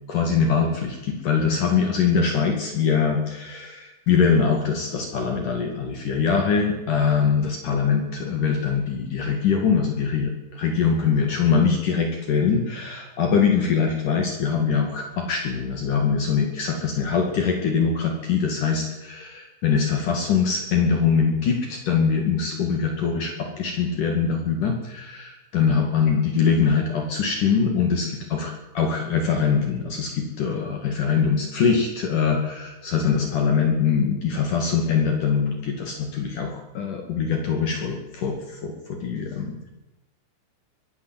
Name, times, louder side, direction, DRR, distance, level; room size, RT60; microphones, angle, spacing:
voice 1, 0.1-39.7, left 6 dB, 55° left, 2 dB, 3.7 m, -23 dB
23.5 x 15.0 x 8.2 m, 0.94 s
omnidirectional pair, 4.7 m